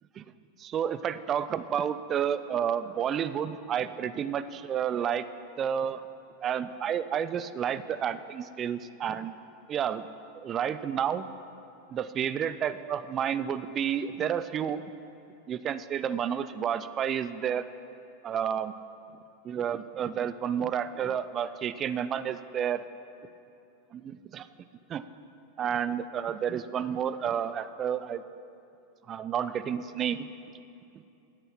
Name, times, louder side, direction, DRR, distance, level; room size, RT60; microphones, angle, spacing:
voice 1, 0.6-5.3 5.6-6.0 6.4-9.3 9.7-10.1 10.4-11.3 11.9-14.8 15.5-17.6 18.2-18.7 19.4-22.8 23.9-24.5 24.9-25.0 25.6-28.2 29.1-30.3, right 8 dB, 35° right, 14 dB, 0.4 m, -30 dB
9.2 x 8.0 x 5.8 m, 2.7 s
hypercardioid pair, 95°, 0 cm